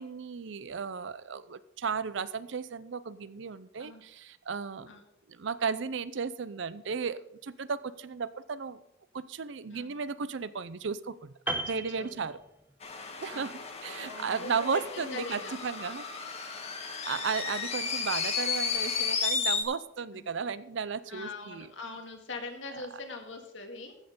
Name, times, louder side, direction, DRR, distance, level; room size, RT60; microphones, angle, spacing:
voice 1, 0.0-4.9 5.3-8.8 9.1-11.3 11.7-12.4 13.2-16.1 17.1-21.7 22.7-22.9, right 5 dB, 65° right, 16 dB, 0.5 m, -35 dB
Piano, 11.5-12.9 13.2-13.4, right 2 dB, 10° right, 1.0 m, -36 dB
voice 2, 12.0-12.3 12.9-13.5 13.9-15.6 20.1-20.3 21.1-23.9, left 2 dB, 70° left, 4 dB, 1.9 m, -42 dB
sound 1, 12.8-19.6, left 5 dB, 35° left, 1.5 m, -33 dB
14.5 x 6.5 x 5.4 m, 0.83 s
head